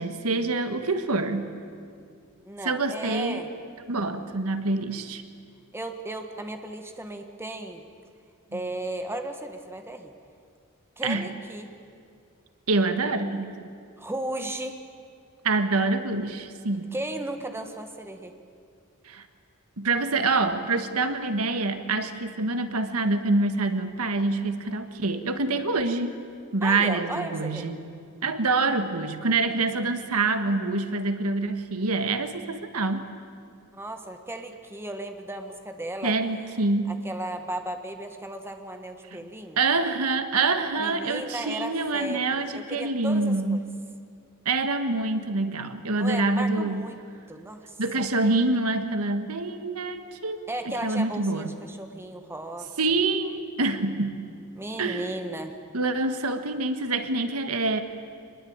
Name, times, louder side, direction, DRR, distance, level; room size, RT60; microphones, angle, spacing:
voice 1, 0.0-1.5 2.6-3.4 3.9-5.2 8.5-8.6 11.0-11.3 12.7-13.7 15.4-16.9 19.0-19.2 19.8-26.1 26.5-27.9 28.2-33.1 36.0-36.9 39.6-43.7 44.4-46.8 47.8-50.4 50.8-51.5 52.8-54.2 54.8-55.1 55.7-57.8, right 3 dB, 80° right, 9 dB, 1.6 m, -26 dB
voice 2, 2.4-3.5 5.7-7.8 8.5-10.1 11.0-11.7 14.0-14.8 16.9-18.3 26.6-27.7 33.7-36.2 36.9-39.6 40.8-43.6 45.9-47.0 47.3-48.1 50.5-52.7 54.5-55.5, right 1 dB, 10° right, 5 dB, 1.5 m, -35 dB
24.0 x 21.0 x 8.8 m, 2.3 s
head